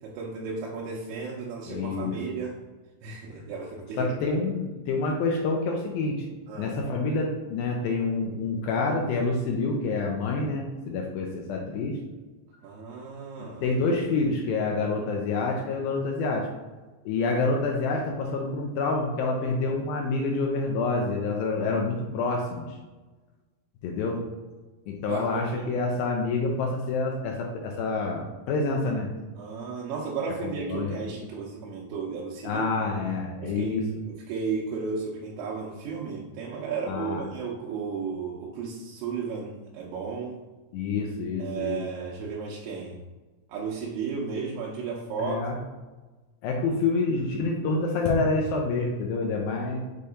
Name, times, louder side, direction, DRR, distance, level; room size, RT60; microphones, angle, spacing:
voice 1, 0.0-2.6 3.0-4.3 6.5-6.8 12.6-13.8 25.1-25.8 29.4-32.7 33.4-40.5 41.4-43.1 43.5-45.4, right 5 dB, 90° right, -4 dB, 2.8 m, -34 dB
voice 2, 1.7-2.2 4.0-6.2 6.6-12.0 13.6-16.5 17.1-22.8 23.8-24.2 24.9-29.1 30.4-31.0 32.4-33.8 36.9-37.2 40.7-41.8 45.2-45.6 46.4-49.8, left 3 dB, 80° left, 0 dB, 2.4 m, -27 dB
6.8 x 2.8 x 4.9 m, 1.2 s
omnidirectional pair, 4.5 m